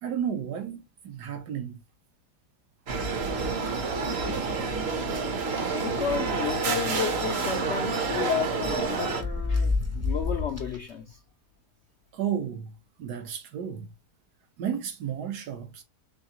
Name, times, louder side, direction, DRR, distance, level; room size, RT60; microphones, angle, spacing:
voice 1, 0.0-1.8 12.1-13.9 14.6-15.8, right 8 dB, 80° right, 1.5 m, -33 dB
sound 1, 2.9-9.2, right 4 dB, 50° right, 0.9 m, -29 dB
sound 2, 4.0-4.9 5.3-5.4 5.7-5.9 7.1-8.1 8.6-10.9, left 3 dB, 20° right, 0.4 m, -31 dB
voice 2, 5.7-11.2, left 8 dB, 80° left, 0.6 m, -32 dB
3.9 x 3.6 x 2.8 m
omnidirectional pair, 1.7 m